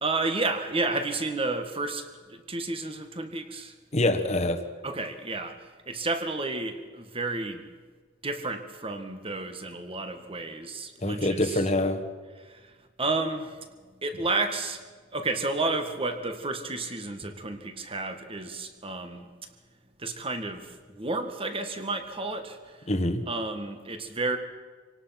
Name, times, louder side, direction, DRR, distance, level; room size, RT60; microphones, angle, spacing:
voice 1, 0.0-3.7 4.8-7.6 8.2-11.6 12.4-12.7 13.0-13.6 14.0-14.8 15.1-19.3 20.0-22.8 23.3-24.4, right 3 dB, 30° right, 7 dB, 1.8 m, -31 dB
voice 2, 3.9-4.6 11.0-12.0 22.9-23.2, left 1 dB, 35° left, 6 dB, 1.5 m, -25 dB
26.5 x 18.0 x 5.9 m, 1.5 s
head